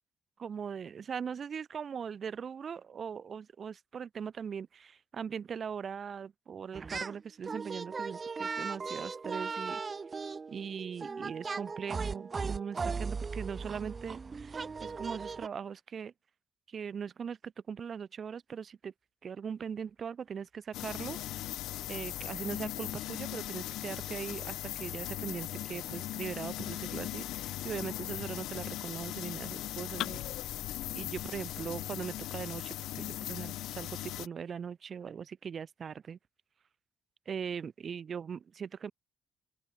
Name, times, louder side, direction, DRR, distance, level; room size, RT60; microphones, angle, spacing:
voice 1, 0.4-9.8 10.5-16.1 16.7-18.9 19.2-21.2 21.9-30.2 30.9-36.2 37.3-38.9, right 7 dB, 50° right, 1.9 m, -40 dB
sound 1, 6.7-7.2 7.4-15.5, right 4 dB, 35° right, 1.1 m, -38 dB
sound 2, 20.7-34.3, left 15 dB, 90° left, 0.4 m, -39 dB
open air
cardioid pair, 90°, 0 cm